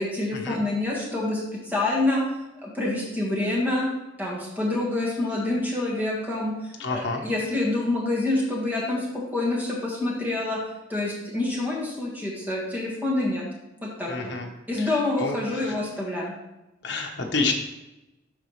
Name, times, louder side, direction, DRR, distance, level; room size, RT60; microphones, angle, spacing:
voice 1, 0.0-2.2 2.6-3.9 4.2-6.5 6.9-9.1 9.3-10.6 10.9-13.4 13.8-14.3 14.7-16.3, left 2 dB, 10° right, -4 dB, 1.9 m, -27 dB
voice 2, 6.8-7.2 14.1-14.5 14.8-14.9 15.2-15.7 16.8-17.5, left 3 dB, 65° left, 2 dB, 1.2 m, -28 dB
12.5 x 4.2 x 3.3 m, 0.97 s
head